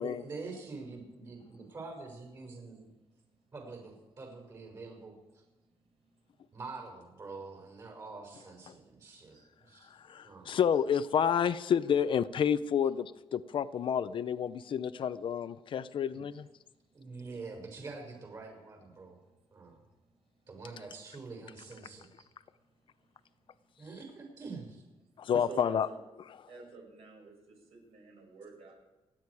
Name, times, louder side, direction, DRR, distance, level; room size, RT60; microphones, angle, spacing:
voice 1, 0.0-2.9 3.5-5.4 6.5-9.9 10.2-10.6 16.1-16.2 16.9-19.2 19.5-19.8 20.5-22.2 23.8-24.8, right 3 dB, 40° right, 1 dB, 5.8 m, -46 dB
voice 2, 9.8-16.5 25.2-25.9, left 8 dB, 55° left, 14 dB, 0.6 m, -30 dB
voice 3, 25.5-26.0 26.5-27.3 27.7-28.7, right 4 dB, 65° right, 0 dB, 6.1 m, -48 dB
29.0 x 10.0 x 4.8 m, 1.1 s
wide cardioid pair, 165°, 11 cm